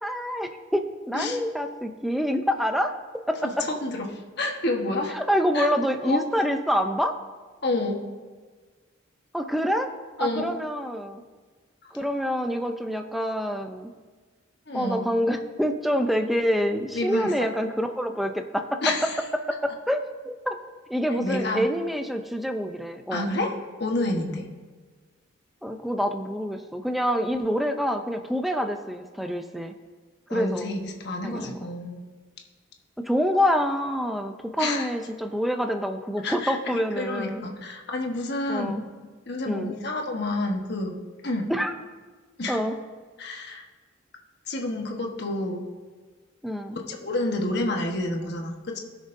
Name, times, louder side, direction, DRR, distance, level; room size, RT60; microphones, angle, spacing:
voice 1, 0.0-2.9 3.3-3.7 5.1-7.2 9.3-9.9 10.2-11.2 11.9-13.9 14.7-18.8 19.5-20.6 20.9-23.3 25.6-29.7 30.3-30.7 31.2-31.6 33.0-37.4 38.5-38.8 39.5-39.8 41.5-41.7 42.5-42.8 46.4-46.8, equal, ahead, 6 dB, 0.5 m, -26 dB
voice 2, 3.4-5.1 5.5-5.7 6.0-6.2 7.6-8.0 10.2-10.5 11.8-11.9 14.7-15.1 16.9-17.3 18.8-19.2 21.1-21.7 23.1-23.5 23.8-24.4 30.3-32.0 34.6-34.9 36.2-36.6 36.9-38.7 39.0-40.9 41.2-41.5 42.4-42.6 43.2-43.6 44.5-45.7 46.9-48.8, left 2 dB, 55° left, 1 dB, 1.1 m, -29 dB
18.0 x 6.4 x 2.6 m, 1.4 s
head